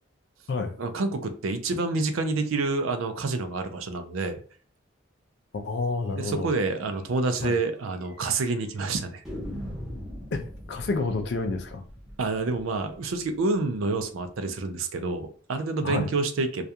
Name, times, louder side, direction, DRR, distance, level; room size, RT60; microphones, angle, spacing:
voice 1, 0.8-4.4 6.2-9.2 12.2-16.7, right 3 dB, 80° right, 8 dB, 0.4 m, -28 dB
voice 2, 5.5-6.5 7.4-7.6 10.3-11.8 15.8-16.1, left 3 dB, 55° left, 6 dB, 0.4 m, -29 dB
sound 1, 6.4-6.6 6.9-7.0 7.3-7.4 8.0-8.5 9.3-14.0, equal, ahead, 0.7 m, -41 dB
2.3 x 2.2 x 2.7 m, 0.43 s
head